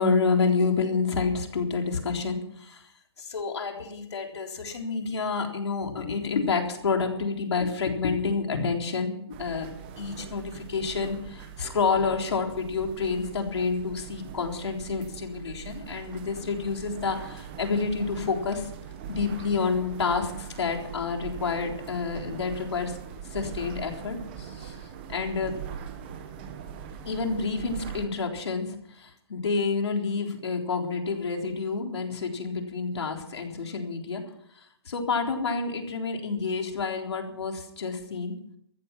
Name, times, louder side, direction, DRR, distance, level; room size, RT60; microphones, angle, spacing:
voice 1, 0.0-2.8 3.2-9.7 10.0-18.7 19.1-23.0 23.2-24.8 25.1-25.5 27.1-34.2 34.9-38.3, left 4 dB, 80° left, 2 dB, 3.8 m, -29 dB
sound 1, 9.3-28.1, right 8 dB, 20° right, 1.3 m, -41 dB
14.0 x 14.0 x 6.0 m, 0.72 s
hypercardioid pair, 175°, 14 cm